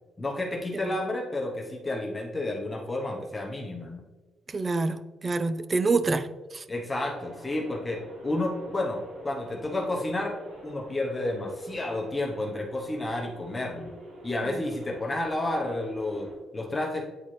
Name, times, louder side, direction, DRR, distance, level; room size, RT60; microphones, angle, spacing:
voice 1, 0.2-4.0 6.7-13.9 14.2-17.0, left 2 dB, 15° left, -1 dB, 0.8 m, -31 dB
voice 2, 4.5-6.3 6.5-6.6 14.4-14.6, right 3 dB, 25° right, 12 dB, 0.3 m, -27 dB
sound 1, 6.9-16.3, right 1 dB, 80° right, 1.8 m, -47 dB
8.8 x 4.2 x 3.2 m, 1.2 s
cardioid pair, 160°, 0 cm